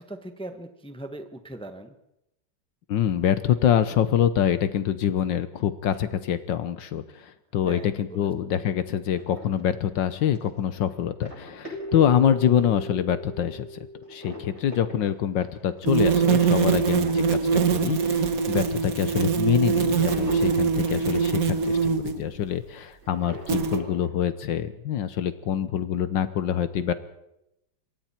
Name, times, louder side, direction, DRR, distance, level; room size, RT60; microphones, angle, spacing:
voice 1, 0.0-1.9 7.6-8.3 16.7-17.1, right 1 dB, 5° left, 8 dB, 1.1 m, -40 dB
voice 2, 2.9-13.8 14.1-26.9, left 9 dB, 70° left, 12 dB, 1.6 m, -25 dB
sound 1, 9.1-12.9 13.4-13.7 14.0-22.7 23.0-24.1, equal, 35° right, 8.2 m, -43 dB
Keyboard (musical), 11.7-15.0, right 1 dB, 90° left, 3.2 m, -38 dB
sound 2, 15.9-22.2 23.5-23.8, right 6 dB, 50° right, 1.6 m, -23 dB
27.5 x 23.0 x 4.5 m, 0.86 s
omnidirectional pair, 2.1 m